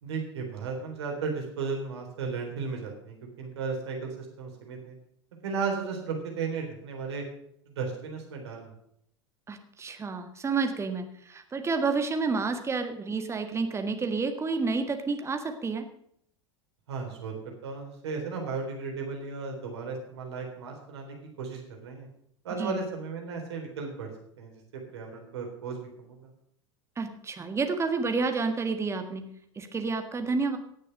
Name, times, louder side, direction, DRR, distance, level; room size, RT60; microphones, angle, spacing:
voice 1, 0.0-5.0 5.4-7.2 7.7-8.7 16.9-22.1 22.4-24.1 24.4-24.5 24.9-26.3, right 5 dB, 65° right, 2 dB, 3.9 m, -35 dB
voice 2, 9.5-15.8 22.5-22.8 27.0-29.2 29.5-30.6, right 4 dB, 20° right, 6 dB, 1.7 m, -30 dB
18.0 x 6.7 x 6.5 m, 0.72 s
figure-of-eight pair, 80°, 15 cm